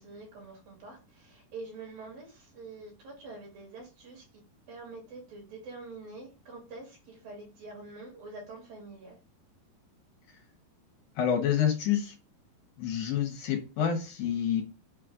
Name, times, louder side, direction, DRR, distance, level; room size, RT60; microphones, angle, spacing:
voice 1, 0.0-4.3 4.7-9.2, right 3 dB, 60° right, -2 dB, 4.4 m, -46 dB
voice 2, 11.2-12.1 12.8-14.6, left 9 dB, 65° left, 1 dB, 2.9 m, -28 dB
8.7 x 3.3 x 3.8 m, 0.31 s
omnidirectional pair, 4.7 m